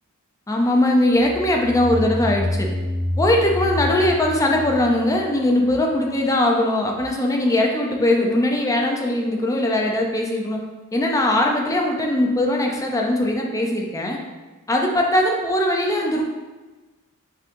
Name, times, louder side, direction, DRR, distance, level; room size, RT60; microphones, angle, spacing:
voice 1, 0.5-2.7 3.2-10.6 10.9-14.2 14.7-16.2, left 1 dB, 15° left, 1 dB, 0.4 m, -20 dB
sound 1, 1.2-5.8, left 1 dB, 5° right, 0.9 m, -28 dB
5.4 x 3.7 x 2.5 m, 1.2 s
head